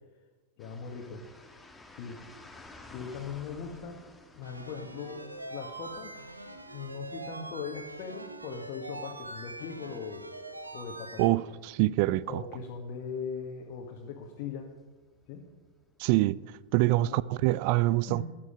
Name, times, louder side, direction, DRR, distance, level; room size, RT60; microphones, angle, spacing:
voice 1, 0.6-1.2 2.0-2.2 2.9-4.0 4.4-6.2 6.7-10.2 10.7-11.4 12.2-14.7 15.3-15.4 16.9-17.2 17.9-18.2, left 6 dB, 45° left, 1.7 m, -40 dB
sound 1, 0.6-16.7, left 2 dB, 10° left, 1.6 m, -57 dB
sound 2, 4.4-11.3, right 2 dB, 85° right, 1.1 m, -43 dB
voice 2, 11.2-12.4 16.0-16.4 16.7-18.2, right 18 dB, 45° right, 0.3 m, -25 dB
15.0 x 11.0 x 5.1 m
figure-of-eight pair, 90°, 0 cm